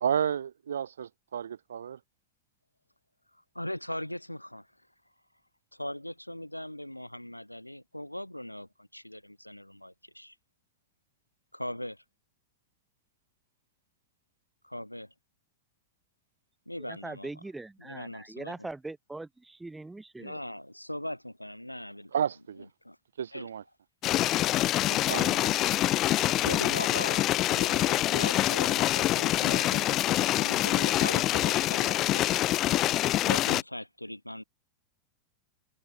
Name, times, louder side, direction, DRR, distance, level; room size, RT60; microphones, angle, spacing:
voice 1, 0.0-2.0 22.1-22.7 23.2-23.6 24.9-25.7, right 8 dB, 65° right, 1.0 m, -32 dB
voice 2, 3.5-4.7 5.7-10.3 11.5-12.0 14.6-15.1 16.7-17.3 17.9-18.5 20.2-22.1 22.8-23.0 23.3-23.5 26.3-32.7 33.3-34.4, left 1 dB, 90° left, 1.4 m, -39 dB
voice 3, 16.9-20.4, right 2 dB, 5° right, 3.0 m, -41 dB
sound 1, 24.0-33.6, left 15 dB, 35° left, 0.4 m, -25 dB
figure-of-eight pair, 90°, 0 cm